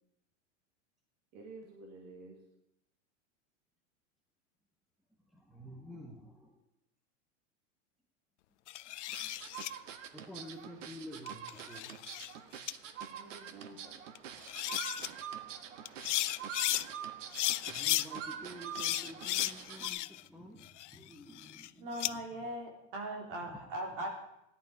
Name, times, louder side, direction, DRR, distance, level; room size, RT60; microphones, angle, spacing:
voice 1, 1.3-2.4 13.1-14.1, right 3 dB, 30° right, 1 dB, 1.9 m, -51 dB
voice 2, 5.3-6.6 8.8-9.3 10.1-11.9 16.9-17.1 17.7-22.2 23.5-23.6, equal, ahead, 1 dB, 0.7 m, -50 dB
sound 1, 8.7-9.7 11.3-12.3 12.7-12.8 14.2-14.3 14.5-15.1 15.9-16.9 17.3-18.1 18.8-20.3 20.6-22.1, left 16 dB, 75° left, 0.6 m, -34 dB
sound 2, 9.1-19.9, right 8 dB, 85° right, 1.5 m, -45 dB
voice 3, 21.8-24.1, right 1 dB, 45° right, 0 dB, 3.9 m, -39 dB
16.0 x 11.0 x 5.2 m, 0.84 s
supercardioid pair, 175°, 36 cm